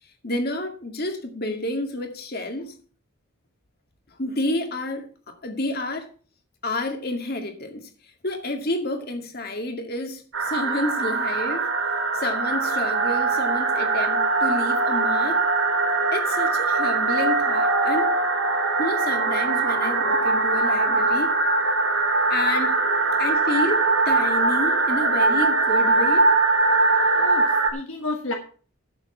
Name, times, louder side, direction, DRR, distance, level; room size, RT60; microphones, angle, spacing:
voice 1, 0.2-2.8 4.2-6.1 6.6-7.9 8.2-11.7 12.1-15.4 16.1-18.2 18.8-21.3 22.3-22.7 23.2-26.3, left 1 dB, 45° left, 2.2 m, -29 dB
sound 1, 10.3-27.7, right 3 dB, 60° right, 2.4 m, -21 dB
voice 2, 27.1-28.3, left 2 dB, 65° left, 1.5 m, -31 dB
12.0 x 7.2 x 5.8 m
head